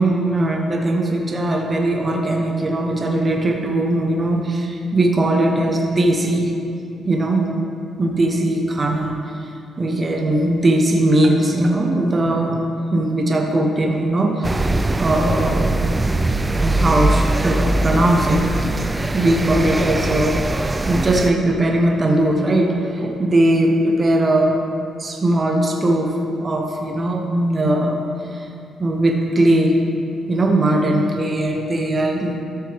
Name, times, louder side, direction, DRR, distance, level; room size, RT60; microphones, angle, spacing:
voice 1, 0.0-6.5 7.0-7.5 8.0-9.5 9.8-12.6 12.9-14.7 15.0-15.8 16.6-20.4 20.9-24.6 25.0-28.5 28.8-29.8 30.3-32.4, right 1 dB, 40° right, 1 dB, 1.1 m, -19 dB
sound 1, 14.4-21.3, right 2 dB, 20° right, 0.4 m, -21 dB
13.5 x 6.4 x 3.5 m, 2.6 s
supercardioid pair, 60°, 0 cm